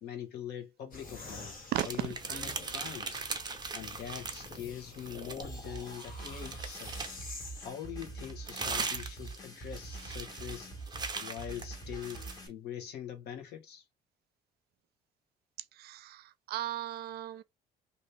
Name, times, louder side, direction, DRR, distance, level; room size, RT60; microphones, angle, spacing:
voice 1, 0.0-3.2 3.7-6.9 7.6-10.7 11.2-12.2 12.5-13.8, left 9 dB, 75° left, 1.1 m, -43 dB
sound 1, 0.9-7.7, left 2 dB, 55° left, 1.3 m, -48 dB
sound 2, 1.7-4.6 4.9-7.3 8.0-12.4, right 4 dB, 25° right, 0.8 m, -39 dB
sound 3, 5.4-12.5, right 3 dB, 25° left, 1.1 m, -45 dB
voice 2, 15.8-17.4, right 13 dB, 70° right, 0.5 m, -36 dB
2.8 x 2.7 x 3.2 m
cardioid pair, 110°, 17 cm